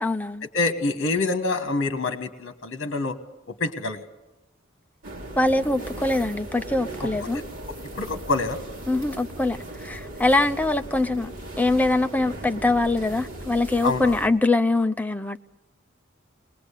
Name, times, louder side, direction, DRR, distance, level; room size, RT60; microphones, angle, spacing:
voice 1, 0.0-0.5 5.4-7.4 8.9-11.3 11.6-15.4, left 2 dB, 10° left, 0.7 m, -23 dB
voice 2, 0.5-3.2 3.5-4.0 7.2-7.4 8.0-8.6 13.8-14.1, left 3 dB, 60° left, 1.5 m, -26 dB
sound 1, 5.0-14.3, right 1 dB, 40° right, 4.7 m, -38 dB
21.0 x 20.5 x 8.4 m
head